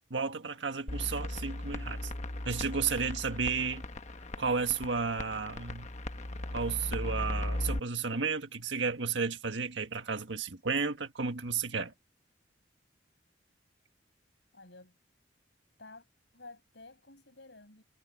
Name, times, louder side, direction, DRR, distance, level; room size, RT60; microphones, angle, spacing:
voice 1, 0.1-2.1 2.4-3.8 4.4-5.9 6.5-11.9, right 5 dB, 80° right, 1.6 m, -33 dB
sound 1, 0.9-7.8, left 1 dB, 40° left, 1.2 m, -37 dB
voice 2, 14.5-15.0 15.8-16.1 16.3-17.8, left 3 dB, 70° left, 7.3 m, -52 dB
head